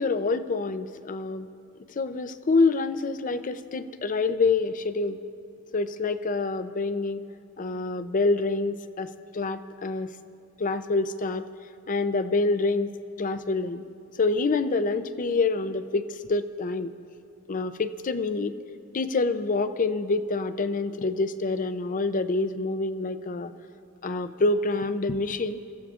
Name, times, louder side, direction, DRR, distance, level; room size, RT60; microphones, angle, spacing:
voice 1, 0.0-1.5 1.9-5.2 5.7-7.2 7.6-10.1 10.6-11.5 11.9-12.9 13.2-13.8 14.2-16.9 17.5-18.5 18.9-23.5 24.0-25.6, left 3 dB, 40° left, 11 dB, 0.5 m, -26 dB
30.0 x 15.0 x 2.5 m, 2.5 s
head